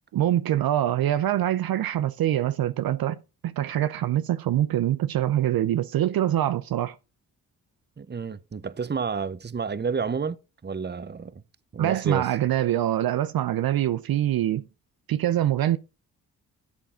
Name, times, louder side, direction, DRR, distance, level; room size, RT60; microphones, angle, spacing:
voice 1, 0.1-3.2 3.4-7.0 11.8-14.6 15.1-15.8, right 12 dB, 60° right, 0.6 m, -24 dB
voice 2, 8.0-10.4 10.6-11.4 11.7-12.3, right 5 dB, 25° right, 0.8 m, -30 dB
11.5 x 6.9 x 3.8 m
supercardioid pair, 45°, 40 cm